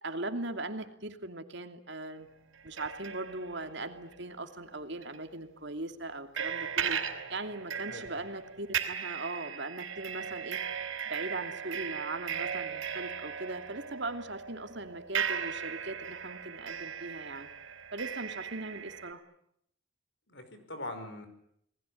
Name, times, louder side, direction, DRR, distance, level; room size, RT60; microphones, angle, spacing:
voice 1, 0.0-2.3 2.6-7.0 7.3-10.6 11.0-17.5 17.9-19.2, right 2 dB, 60° right, 7 dB, 2.7 m, -39 dB
sound 1, 2.5-4.6 5.0-5.2 6.4-19.1, right 7 dB, 85° right, 4.2 m, -37 dB
voice 2, 7.9-8.2 20.3-21.3, left 1 dB, 60° left, 9 dB, 5.3 m, -42 dB
29.0 x 20.0 x 10.0 m, 0.74 s
head